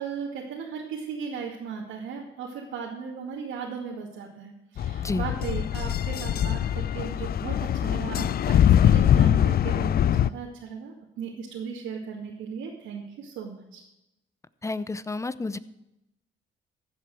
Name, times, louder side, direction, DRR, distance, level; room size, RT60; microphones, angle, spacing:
voice 1, 0.0-13.8, right 6 dB, 90° right, -4 dB, 2.3 m, -36 dB
sound 1, 4.8-10.3, left 10 dB, 50° left, 0.5 m, -22 dB
voice 2, 14.6-15.6, left 3 dB, 15° left, 16 dB, 0.7 m, -30 dB
15.0 x 8.0 x 6.3 m, 0.89 s
cardioid pair, 90°, 20 cm